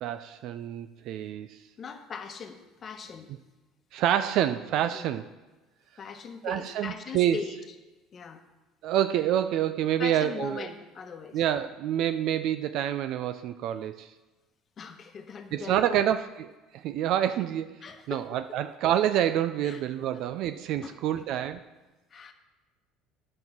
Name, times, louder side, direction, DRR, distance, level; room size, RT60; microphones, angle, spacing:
voice 1, 0.0-1.6 3.9-5.3 6.4-7.4 8.8-10.7 11.3-14.1 15.5-16.2 16.7-17.7 18.1-21.6, right 11 dB, 65° right, 11 dB, 0.4 m, -27 dB
voice 2, 1.8-3.3 4.9-5.2 6.0-7.6 8.1-8.4 10.0-11.4 14.8-16.3 17.8-18.3 19.6-19.8 20.1-20.2 20.8-21.2 22.1-22.3, left 6 dB, 40° left, 6 dB, 1.1 m, -40 dB
9.7 x 5.4 x 5.9 m, 1.2 s
supercardioid pair, 95°, 0 cm